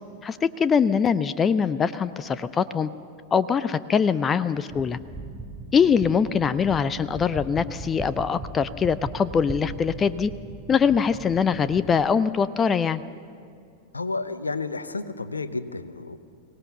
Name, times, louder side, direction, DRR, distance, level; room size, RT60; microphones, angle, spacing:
voice 1, 0.2-2.9 3.3-5.0 5.7-10.3 10.7-13.0, left 6 dB, 20° left, 16 dB, 0.5 m, -23 dB
sound 1, 4.7-12.1, right 2 dB, 5° right, 1.5 m, -39 dB
voice 2, 13.9-16.2, left 3 dB, 80° left, 13 dB, 0.8 m, -31 dB
23.5 x 18.0 x 6.9 m, 2.3 s
figure-of-eight pair, 90°, 0 cm